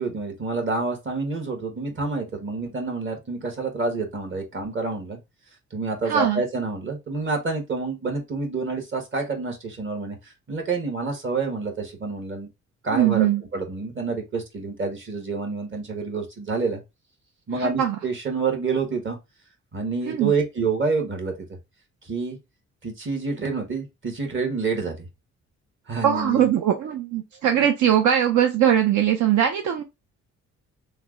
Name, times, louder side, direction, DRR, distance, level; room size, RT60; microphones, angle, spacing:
voice 1, 0.0-5.2 5.7-12.5 12.8-13.3 13.5-16.8 17.5-19.2 19.7-21.3 22.0-22.4 22.8-25.1 25.9-26.4, right 4 dB, 40° right, 1.5 m, -28 dB
voice 2, 6.1-6.4 12.9-13.4 17.6-18.0 20.0-20.3 26.0-29.8, right 10 dB, 70° right, 0.6 m, -21 dB
3.2 x 2.2 x 3.7 m
cardioid pair, 90°, 30 cm